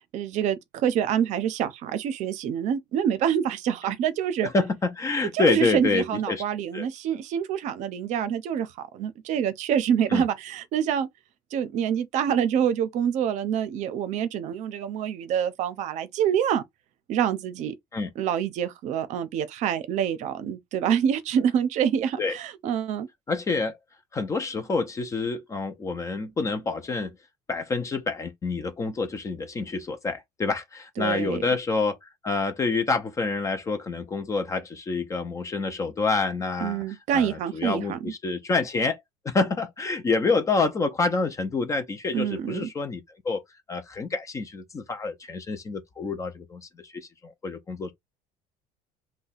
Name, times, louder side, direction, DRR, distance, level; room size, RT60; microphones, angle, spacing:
voice 1, 0.1-4.5 5.3-8.7 8.9-11.1 11.5-16.6 17.1-17.7 18.2-23.1 31.0-31.4 36.6-38.0 42.1-42.7, right 9 dB, 50° right, 0.6 m, -26 dB
voice 2, 4.4-6.4 6.7-6.9 10.1-10.2 17.9-18.1 22.2-22.4 23.3-23.8 24.1-27.1 27.5-43.4 43.7-47.9, left 3 dB, 20° left, 0.5 m, -27 dB
2.7 x 2.2 x 4.0 m
cardioid pair, 140°, 15 cm